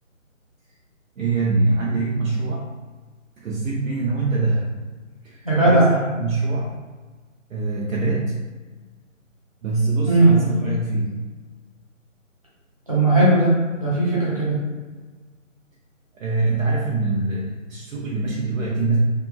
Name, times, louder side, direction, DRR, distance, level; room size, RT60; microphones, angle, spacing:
voice 1, 1.2-2.7 3.4-4.8 5.2-6.7 7.5-8.4 9.6-11.1 16.1-19.0, right 3 dB, 75° right, -4 dB, 0.6 m, -24 dB
voice 2, 5.4-5.9 10.1-10.4 12.9-14.6, right 2 dB, 25° right, -9 dB, 0.6 m, -17 dB
2.9 x 2.3 x 2.2 m, 1.3 s
hypercardioid pair, 170°, 40 cm